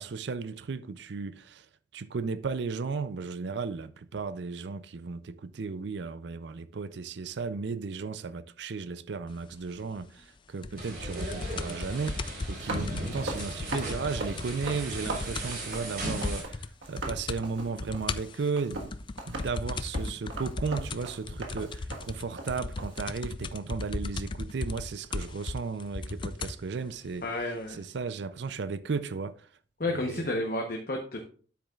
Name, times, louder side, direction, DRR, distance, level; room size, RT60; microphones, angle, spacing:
voice 1, 0.0-1.7 1.9-18.9 19.3-27.3 27.7-29.5 29.9-30.3, right 4 dB, 65° right, 0.5 m, -35 dB
sound 1, 10.6-15.7 15.9-16.0 16.2-16.7 17.0-17.4 17.8-26.6 27.4-27.5, left 3 dB, 25° left, 0.3 m, -36 dB
sound 2, 10.8-16.4, right 1 dB, 50° right, 4.2 m, -37 dB
sound 3, 12.4-16.5 16.8-23.0, right 2 dB, 90° right, 1.5 m, -39 dB
voice 2, 27.2-27.8 29.8-31.2, left 2 dB, 50° left, 0.9 m, -31 dB
9.4 x 8.2 x 2.4 m
head